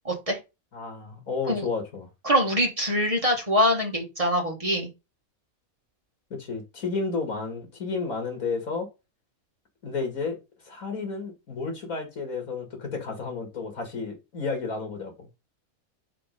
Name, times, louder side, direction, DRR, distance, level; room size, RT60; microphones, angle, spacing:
voice 1, 0.1-0.4 1.5-1.7 2.2-4.9, equal, 25° right, 1.8 m, -24 dB
voice 2, 0.7-2.1 6.3-8.9 9.8-10.4 10.6-15.3, left 4 dB, 75° left, 2.6 m, -32 dB
5.1 x 4.3 x 5.2 m
omnidirectional pair, 1.5 m